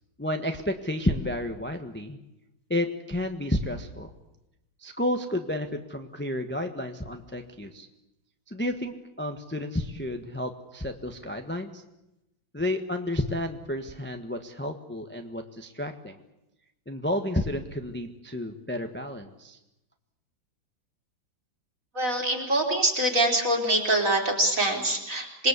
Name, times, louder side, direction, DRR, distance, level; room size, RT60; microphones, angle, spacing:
voice 1, 0.2-2.2 2.7-4.1 4.8-7.9 8.5-11.8 12.5-16.2 16.9-19.6, left 1 dB, 5° left, 5 dB, 1.2 m, -31 dB
voice 2, 21.9-25.5, right 1 dB, 40° right, 1 dB, 4.6 m, -24 dB
27.0 x 21.0 x 8.3 m, 0.90 s
omnidirectional pair, 2.1 m